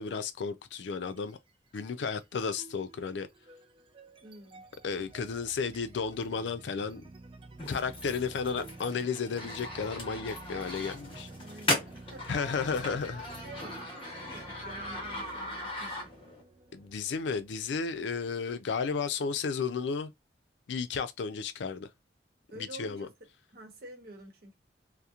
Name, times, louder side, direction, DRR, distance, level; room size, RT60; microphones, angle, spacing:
voice 1, 0.0-1.4 1.7-3.3 4.8-7.0 7.7-11.3 12.3-13.2 16.7-20.1 20.7-21.9 22.6-23.1, left 5 dB, 85° left, 0.4 m, -33 dB
sound 1, 0.8-1.3 1.7-18.3, right 2 dB, 30° right, 0.3 m, -51 dB
voice 2, 4.2-4.7 11.4-12.4 12.9-13.0 13.4-16.1 22.5-23.1 23.5-24.6, right 1 dB, 60° right, 0.9 m, -49 dB
sound 2, 7.6-16.4, left 1 dB, 30° left, 0.9 m, -38 dB
2.8 x 2.0 x 2.4 m
head